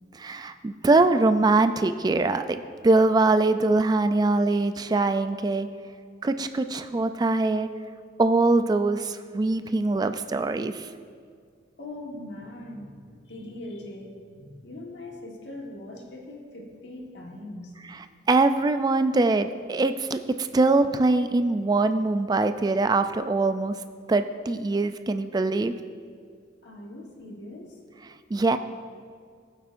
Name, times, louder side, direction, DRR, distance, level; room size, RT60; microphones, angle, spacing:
voice 1, 0.2-5.7 6.2-7.7 8.2-10.9 18.3-23.8 24.1-25.7 28.3-28.6, right 3 dB, 20° right, 10 dB, 0.3 m, -23 dB
voice 2, 11.8-17.8 26.6-27.8, left 1 dB, 75° left, 0 dB, 1.4 m, -41 dB
14.5 x 8.0 x 2.5 m, 2.1 s
head